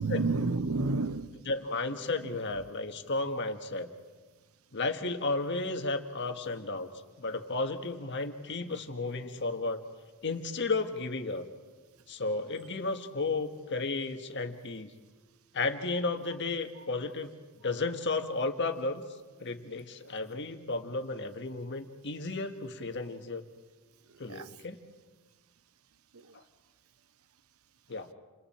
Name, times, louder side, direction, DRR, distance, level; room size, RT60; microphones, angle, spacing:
voice 1, 0.0-1.5 16.8-16.9 24.3-24.5 26.1-26.3, right 3 dB, 75° right, 14 dB, 0.7 m, -31 dB
voice 2, 1.5-3.9 4.7-6.9 7.2-9.8 10.2-11.4 12.1-14.9 15.5-17.3 17.6-19.0 19.4-23.4 24.2-24.8 27.9-28.1, left 3 dB, 55° left, 6 dB, 1.7 m, -33 dB
29.0 x 28.5 x 4.5 m, 1.3 s
head